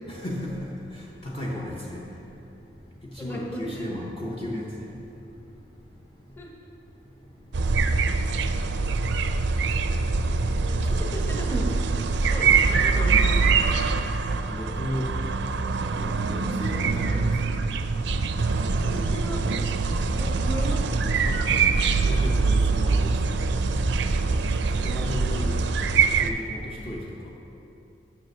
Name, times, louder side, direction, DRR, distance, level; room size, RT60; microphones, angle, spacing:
voice 1, 0.1-0.7 1.2-2.1 3.1-4.9 10.8-11.1 12.4-12.5 14.5-15.1 16.0-17.3 22.0-23.2 24.7-25.7 26.2-27.1, left 1 dB, 30° left, -3 dB, 0.8 m, -34 dB
voice 2, 3.2-3.8 6.4-6.5 10.6-12.0 12.3-13.4 18.8-19.4 20.1-21.4, right 1 dB, 10° left, -1 dB, 1.1 m, -35 dB
sound 1, 7.5-26.3, right 4 dB, 70° right, 0.4 m, -24 dB
7.7 x 6.0 x 6.6 m, 2.8 s
head